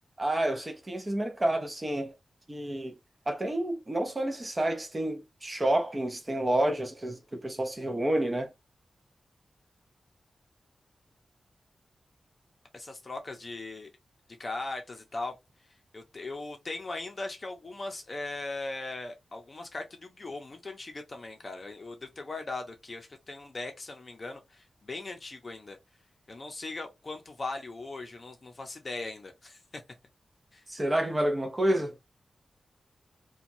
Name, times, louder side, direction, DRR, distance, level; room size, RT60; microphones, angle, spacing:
voice 1, 0.2-2.1 2.5-2.9 3.3-8.5 30.7-32.0, right 1 dB, 20° right, 0.6 m, -29 dB
voice 2, 12.7-13.9 14.4-15.4 15.9-25.8 26.3-29.8 30.5-30.6, left 2 dB, 35° left, 0.6 m, -39 dB
2.9 x 2.3 x 2.6 m
wide cardioid pair, 170°, 0 cm